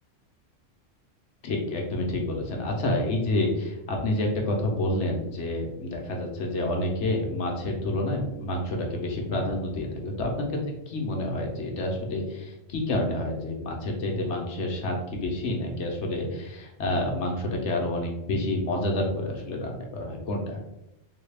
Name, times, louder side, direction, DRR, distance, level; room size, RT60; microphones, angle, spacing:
voice 1, 1.4-10.6 10.9-20.6, left 1 dB, 65° left, 1 dB, 1.0 m, -28 dB
3.7 x 2.3 x 3.3 m, 0.86 s
omnidirectional pair, 1.3 m